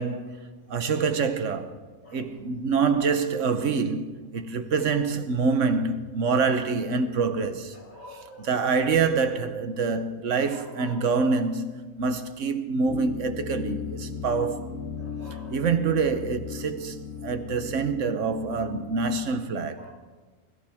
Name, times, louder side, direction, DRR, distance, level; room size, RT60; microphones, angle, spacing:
voice 1, 0.0-1.8 2.1-7.8 8.1-14.8 15.5-19.9, right 5 dB, 75° right, 1.2 m, -26 dB
voice 2, 7.9-8.6 10.5-11.1 15.0-15.6 19.8-19.9, equal, 55° left, 4.6 m, -46 dB
sound 1, 12.9-19.3, left 6 dB, 90° left, 1.7 m, -37 dB
21.5 x 14.5 x 3.5 m
omnidirectional pair, 1.3 m